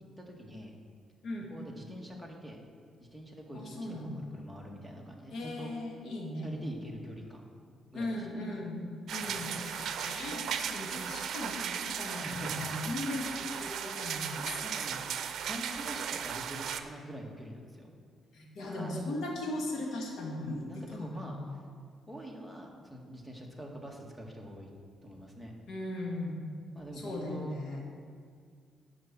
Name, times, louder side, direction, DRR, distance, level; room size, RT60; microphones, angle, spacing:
voice 1, 0.2-0.8 1.5-2.6 3.0-5.8 6.4-7.4 7.9-8.4 9.2-9.9 12.2-12.7 14.6-15.0 15.4-17.9 18.6-19.1 20.4-21.4 22.1-24.7 25.0-25.5 26.7-27.6, equal, ahead, 0 dB, 1.9 m, -45 dB
voice 2, 3.5-4.3 5.3-6.6 7.9-14.6 18.3-21.5 25.7-26.4 27.0-27.8, left 1 dB, 75° left, -1 dB, 2.2 m, -38 dB
sound 1, 9.1-16.8, right 8 dB, 70° right, 0.6 m, -36 dB
11.0 x 5.8 x 7.6 m, 2.1 s
cardioid pair, 90°, 0 cm